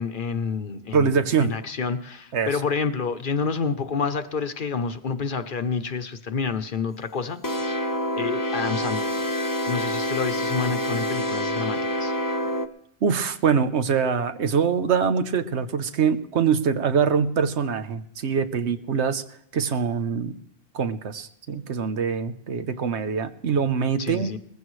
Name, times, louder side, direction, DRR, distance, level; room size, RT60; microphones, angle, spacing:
voice 1, 0.0-7.8 8.2-9.1 9.7-12.1 24.0-24.4, left 5 dB, 50° left, 9 dB, 0.9 m, -29 dB
voice 2, 0.9-1.5 2.3-2.5 13.0-19.2 19.5-20.4 20.7-24.3, right 6 dB, 75° right, 11 dB, 1.1 m, -24 dB
sound 1, 7.4-12.7, left 1 dB, 20° left, 0.8 m, -27 dB
19.5 x 15.0 x 3.2 m, 0.74 s
omnidirectional pair, 1.2 m